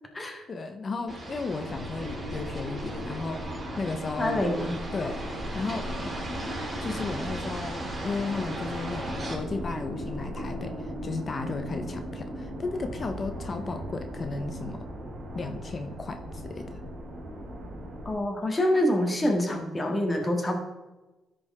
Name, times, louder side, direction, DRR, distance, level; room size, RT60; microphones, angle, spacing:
voice 1, 0.5-4.4 4.9-5.2 5.5-5.9 6.8-14.9 15.3-16.8, left 3 dB, 40° left, 7 dB, 0.9 m, -34 dB
sound 1, 1.1-9.4, right 1 dB, 25° right, 3.3 m, -38 dB
sound 2, 1.6-18.1, equal, 50° right, 2.9 m, -37 dB
voice 2, 4.2-4.8 18.1-20.5, left 1 dB, 20° left, 3 dB, 2.0 m, -26 dB
13.5 x 5.2 x 3.6 m, 1.1 s
cardioid pair, 90°, 0 cm